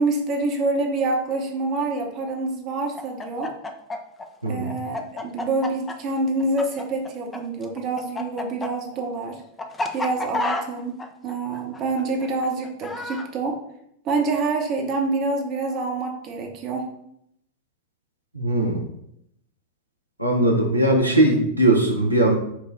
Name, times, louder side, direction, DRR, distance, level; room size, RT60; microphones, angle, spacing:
voice 1, 0.0-3.5 4.5-9.4 9.9-13.6 14.0-16.9, right 3 dB, 35° right, 2 dB, 0.8 m, -26 dB
Chicken rooster, 2.9-7.4 7.6-13.3, left 2 dB, 15° left, 0.4 m, -30 dB
voice 2, 4.4-4.8 18.3-18.8 20.2-22.4, right 1 dB, 90° right, 0 dB, 0.6 m, -19 dB
5.7 x 2.2 x 3.7 m, 0.76 s
figure-of-eight pair, 90°, 0 cm